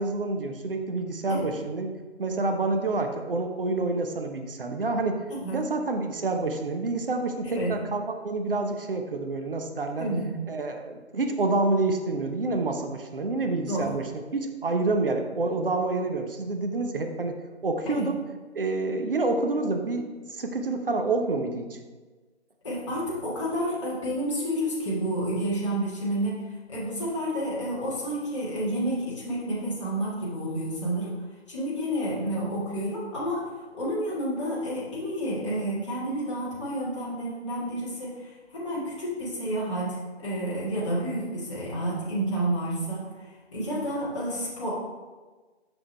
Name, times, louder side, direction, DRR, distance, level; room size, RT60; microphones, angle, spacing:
voice 1, 0.0-1.9 2.2-5.2 5.5-10.1 10.5-18.2 18.5-21.8, right 3 dB, 55° right, 5 dB, 0.8 m, -28 dB
voice 2, 5.3-5.6 7.4-7.7 10.0-10.3 13.7-13.9 17.9-18.1 22.6-26.4 26.7-31.1 31.5-33.5 33.8-43.1 43.5-44.7, right 1 dB, 25° left, -8 dB, 1.7 m, -30 dB
6.0 x 6.0 x 3.3 m, 1.3 s
figure-of-eight pair, 160°, 34 cm